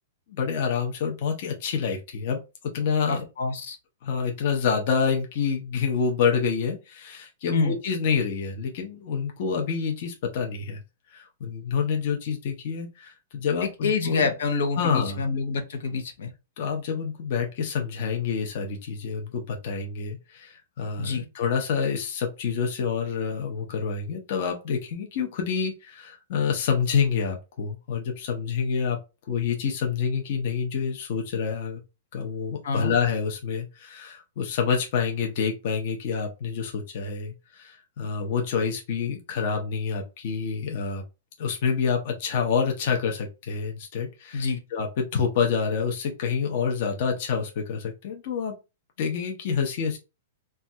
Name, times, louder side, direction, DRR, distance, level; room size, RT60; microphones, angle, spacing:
voice 1, 0.3-2.4 2.7-3.3 4.0-10.8 11.1-14.3 14.8-15.3 16.6-29.0 29.3-31.8 32.1-41.0 41.4-48.5 49.0-50.0, left 6 dB, 40° left, 0.6 m, -27 dB
voice 2, 3.1-3.8 7.5-7.8 13.6-16.3 21.0-21.2 32.6-32.9 44.3-44.6, left 4 dB, 75° left, 0.7 m, -27 dB
3.1 x 2.3 x 2.7 m
supercardioid pair, 175°, 0 cm